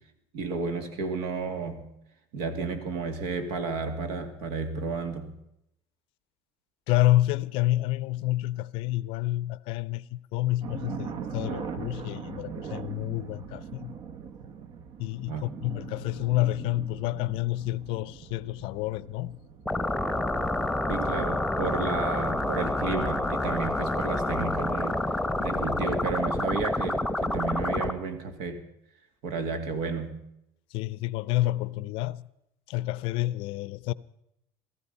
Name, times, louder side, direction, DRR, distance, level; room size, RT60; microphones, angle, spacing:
voice 1, 0.3-1.9 2.3-5.4 15.2-15.4 20.9-25.0 25.4-28.6 29.2-30.2, right 4 dB, 75° right, 2.3 m, -32 dB
voice 2, 6.9-13.9 15.0-19.4 30.7-32.2 32.7-33.9, left 16 dB, 70° left, 0.6 m, -29 dB
sound 1, 10.6-25.7, right 7 dB, 55° right, 1.1 m, -42 dB
sound 2, 19.7-27.9, left 1 dB, ahead, 1.0 m, -28 dB
17.5 x 14.0 x 5.5 m
cardioid pair, 115°, 10 cm